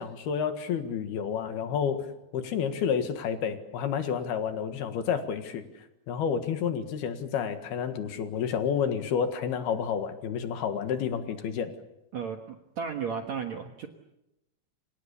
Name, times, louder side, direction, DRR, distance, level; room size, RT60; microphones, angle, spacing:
voice 1, 0.0-5.6 6.1-11.7, left 7 dB, 65° left, 8 dB, 3.5 m, -30 dB
voice 2, 12.1-13.9, right 6 dB, 60° right, 4 dB, 2.0 m, -34 dB
29.0 x 27.0 x 7.1 m, 0.91 s
omnidirectional pair, 5.1 m